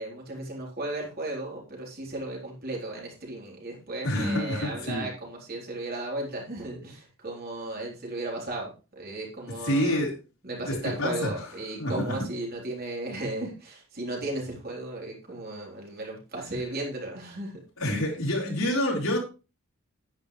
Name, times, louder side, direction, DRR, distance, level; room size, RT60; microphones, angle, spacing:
voice 1, 0.0-10.0 10.4-17.5, right 2 dB, 45° right, -2 dB, 3.9 m, -35 dB
voice 2, 4.0-5.1 9.6-10.1 10.7-11.5 11.8-12.3 17.8-19.2, left 1 dB, 75° left, -3 dB, 4.1 m, -27 dB
10.5 x 10.0 x 3.3 m, 0.32 s
head